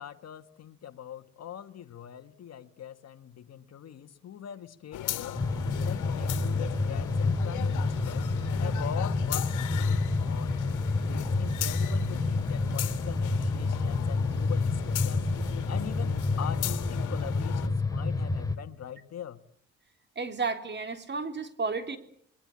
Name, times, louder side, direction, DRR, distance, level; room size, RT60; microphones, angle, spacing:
voice 1, 0.0-5.5 5.8-8.3 8.6-10.0 10.2-10.6 11.2-15.3 15.7-19.4, left 9 dB, 60° left, 10 dB, 1.6 m, -42 dB
sound 1, 4.9-17.7, left 12 dB, 85° left, 2.0 m, -38 dB
sound 2, 5.3-18.6, left 3 dB, 10° left, 2.7 m, -29 dB
voice 2, 20.2-22.0, right 4 dB, 35° right, 7 dB, 3.6 m, -32 dB
27.0 x 21.5 x 8.8 m, 0.67 s
cardioid pair, 90°, 30 cm